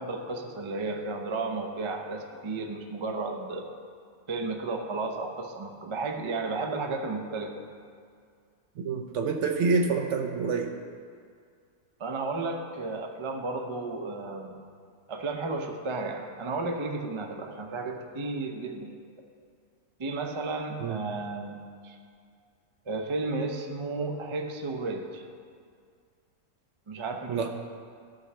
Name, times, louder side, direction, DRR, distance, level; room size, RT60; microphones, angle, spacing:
voice 1, 0.0-3.7 4.3-7.6 12.0-14.6 15.1-18.9 20.0-22.0 22.9-25.2 26.9-27.5, right 3 dB, 35° right, 3 dB, 0.4 m, -33 dB
voice 2, 8.8-10.8 20.8-21.0 27.3-27.5, right 4 dB, 65° right, 4 dB, 0.8 m, -27 dB
15.0 x 6.3 x 3.2 m, 2.2 s
omnidirectional pair, 1.6 m